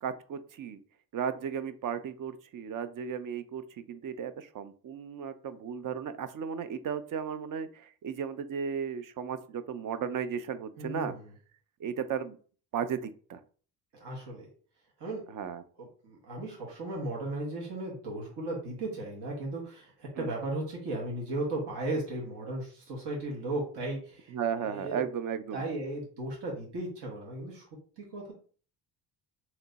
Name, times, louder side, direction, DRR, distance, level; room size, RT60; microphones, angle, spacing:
voice 1, 0.0-0.8 1.1-3.6 3.9-7.7 8.0-11.1 11.8-12.4 12.7-13.4 15.3-15.6 20.2-20.3 24.3-25.6, right 7 dB, 50° right, 12 dB, 0.5 m, -35 dB
voice 2, 10.8-11.3 13.9-14.5 15.0-15.2 15.8-25.0 25.5-27.7 28.0-28.3, right 2 dB, 75° right, -2 dB, 1.6 m, -36 dB
3.2 x 3.0 x 3.9 m, 0.42 s
cardioid pair, 115°, 41 cm